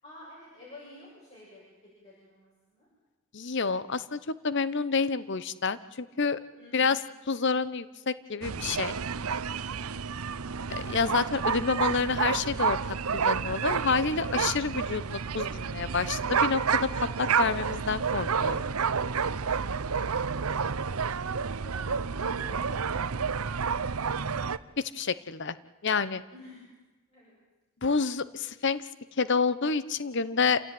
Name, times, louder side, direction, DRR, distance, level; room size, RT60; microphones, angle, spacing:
voice 1, 0.0-2.9 6.6-7.0 9.7-10.2 21.5-23.6 26.3-26.6 27.1-27.4, left 1 dB, 30° left, -6 dB, 7.8 m, -51 dB
voice 2, 3.3-4.2 4.4-6.4 6.7-7.0 7.3-8.9 10.7-12.8 13.1-18.6 24.8-25.5 25.8-26.2 27.8-28.8 29.2-30.6, left 5 dB, 55° left, 16 dB, 0.9 m, -28 dB
sound 1, 8.4-24.6, right 6 dB, 90° right, 0.8 m, -30 dB
28.5 x 17.0 x 9.5 m, 1.1 s
head